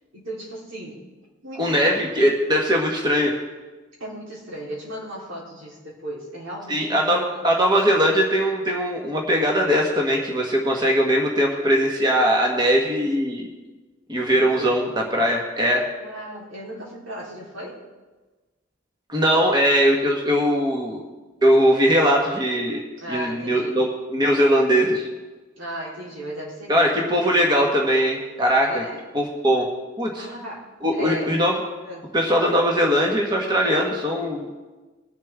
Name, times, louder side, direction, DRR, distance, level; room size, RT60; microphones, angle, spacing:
voice 1, 0.1-1.0 1.4-2.1 4.0-7.4 14.3-14.8 16.0-17.8 23.0-23.8 25.6-27.2 28.6-29.1 30.2-31.4 31.8-32.1, equal, 80° right, -5 dB, 3.5 m, -36 dB
voice 2, 1.6-3.3 6.7-13.5 14.1-15.8 19.1-21.0 21.4-22.8 23.1-25.1 26.7-28.8 29.1-29.7 30.0-30.2 30.8-31.5 32.1-34.5, equal, 20° right, -1 dB, 1.4 m, -20 dB
21.5 x 7.3 x 3.5 m, 1.2 s
head